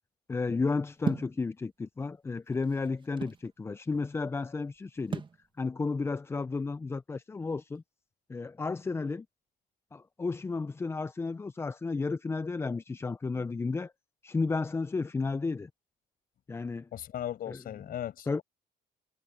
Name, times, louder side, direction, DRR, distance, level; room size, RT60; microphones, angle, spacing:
voice 1, 0.3-5.2 5.6-7.8 8.3-9.3 9.9-13.9 14.2-15.7 16.5-16.9 17.5-17.6 18.3-18.4, left 4 dB, 15° left, 0.4 m, -32 dB
sound 1, 1.0-1.4 2.3-3.5 5.1-5.4, right 5 dB, 30° right, 1.4 m, -34 dB
voice 2, 16.9-18.4, left 11 dB, 60° left, 5.5 m, -37 dB
cardioid pair, 110°, 17 cm